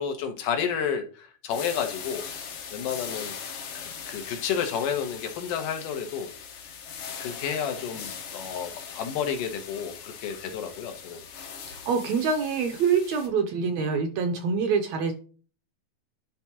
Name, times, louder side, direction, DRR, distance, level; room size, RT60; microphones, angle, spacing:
voice 1, 0.0-2.3 2.7-3.4 3.7-6.3 7.2-8.7 9.0-11.3, left 7 dB, 85° left, 5 dB, 2.7 m, -31 dB
sound 1, 1.5-13.3, left 7 dB, 65° left, 1.3 m, -40 dB
voice 2, 11.7-15.1, right 5 dB, 75° right, 5 dB, 1.7 m, -25 dB
10.5 x 3.6 x 2.8 m, 0.40 s
omnidirectional pair, 3.6 m